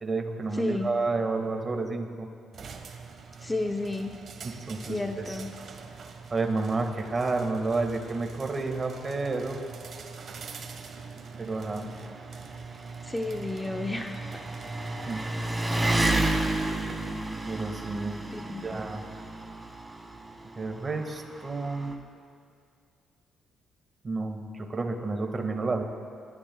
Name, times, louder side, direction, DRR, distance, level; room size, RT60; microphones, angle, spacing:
voice 1, 0.0-2.3 4.4-5.3 6.3-9.6 11.4-11.9 15.1-15.2 17.5-18.2 18.4-19.0 20.6-21.9 24.0-25.8, right 3 dB, 30° right, 4 dB, 1.8 m, -30 dB
voice 2, 0.5-0.9 3.4-4.2 4.8-5.5 13.0-14.4 18.3-18.9, left 2 dB, 15° left, 4 dB, 0.6 m, -32 dB
sound 1, 2.5-16.9, right 5 dB, 55° right, 1.4 m, -44 dB
Engine, 9.0-9.1 9.2-21.9, right 1 dB, 15° right, 1.4 m, -32 dB
27.5 x 14.0 x 2.3 m, 2.3 s
cardioid pair, 90°, 0 cm